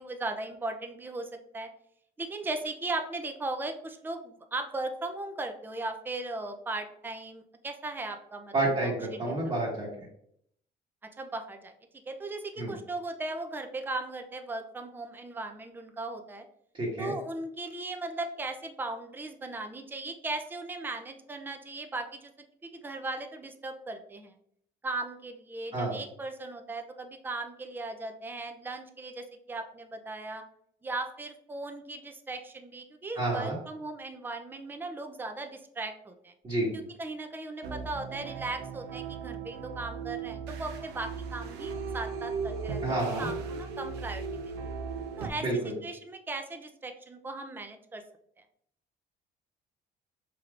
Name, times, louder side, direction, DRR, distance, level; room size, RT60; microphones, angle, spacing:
voice 1, 0.0-1.7 2.2-8.5 8.8-8.9 9.3-9.5 11.2-11.7 12.1-16.5 17.0-22.3 22.6-24.3 24.8-30.4 30.8-36.3 36.7-44.2 45.2-48.0, right 2 dB, 10° right, 5 dB, 0.4 m, -37 dB
voice 2, 8.5-9.9 12.6-12.7 16.7-17.1 25.7-25.9 33.1-33.6 36.4-36.7 42.8-43.3 45.4-45.7, right 2 dB, 35° right, -6 dB, 1.3 m, -29 dB
sound 1, 37.6-45.3, right 5 dB, 85° right, 0.6 m, -37 dB
4.6 x 3.3 x 2.4 m, 0.70 s
cardioid pair, 110°, 17 cm